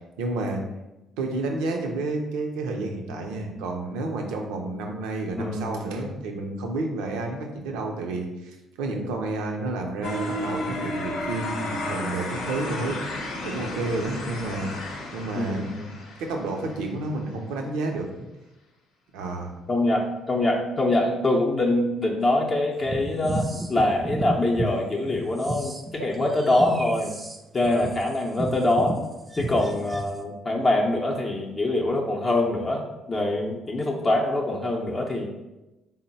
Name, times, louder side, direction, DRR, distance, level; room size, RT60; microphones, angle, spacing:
voice 1, 0.2-0.6 1.2-13.0 13.4-14.7 15.1-15.7 16.2-18.1 19.1-19.5 26.0-26.1, right 2 dB, 85° right, 2 dB, 0.5 m, -30 dB
voice 2, 5.4-5.7 15.4-15.9 19.7-27.1 27.5-29.0 29.4-35.3, left 2 dB, 35° left, -1 dB, 0.6 m, -24 dB
sound 1, 10.0-17.0, left 1 dB, 85° left, 0.7 m, -33 dB
sound 2, 22.8-24.7 25.1-30.2, right 2 dB, 20° right, 0.4 m, -32 dB
3.7 x 2.0 x 4.1 m, 1.0 s
supercardioid pair, 65°, 0 cm